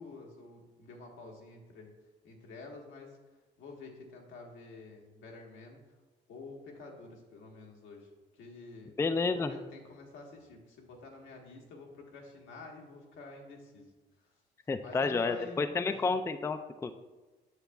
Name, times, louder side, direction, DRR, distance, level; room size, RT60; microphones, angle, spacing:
voice 1, 0.0-1.9 2.2-3.2 3.6-5.8 6.3-13.9 14.2-14.3 14.8-16.1, left 3 dB, 80° left, 0 dB, 1.4 m, -49 dB
voice 2, 9.0-9.5 14.7-16.9, left 4 dB, 15° left, 9 dB, 0.3 m, -30 dB
8.0 x 6.7 x 2.4 m, 1.2 s
cardioid pair, 90°, 20 cm